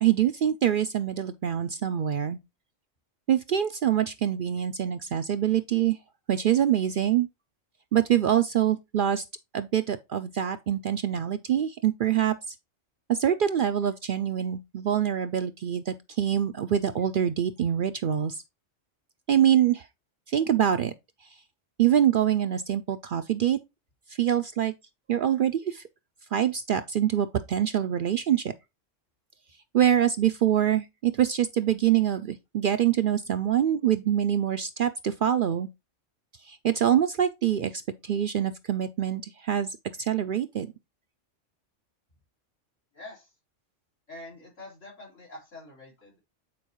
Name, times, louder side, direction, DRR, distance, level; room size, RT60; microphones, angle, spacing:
voice 1, 0.0-2.4 3.3-6.0 6.3-7.3 7.9-9.2 9.5-12.5 13.1-18.4 19.3-19.9 20.3-20.9 21.8-23.6 24.2-24.7 25.1-25.8 26.3-28.5 29.7-35.7 36.4-40.7, right 10 dB, 60° right, 0.5 m, -25 dB
voice 2, 42.9-43.3 44.1-46.2, left 2 dB, 85° left, 4.3 m, -45 dB
8.6 x 4.5 x 3.0 m
omnidirectional pair, 1.3 m